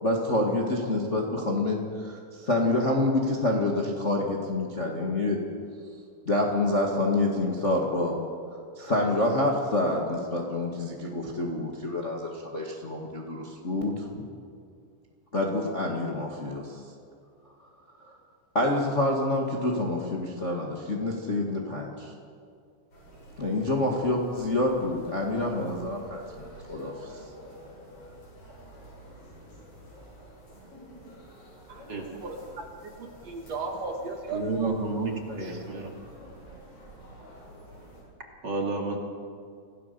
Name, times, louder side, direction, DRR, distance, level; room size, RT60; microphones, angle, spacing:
voice 1, 0.0-5.4 6.2-8.2 8.7-14.2 15.3-16.8 18.0-18.1 18.5-22.1 23.4-26.2 26.7-26.9, left 2 dB, 30° left, -1 dB, 1.5 m, -27 dB
sound 1, 22.9-38.0, right 1 dB, 65° left, 9.8 m, -49 dB
voice 2, 31.7-34.7 35.3-35.6, right 2 dB, 50° right, 2 dB, 2.7 m, -37 dB
voice 3, 34.3-35.9 38.4-39.0, right 3 dB, 35° right, 1 dB, 2.6 m, -30 dB
27.0 x 17.0 x 6.9 m, 2.3 s
omnidirectional pair, 4.1 m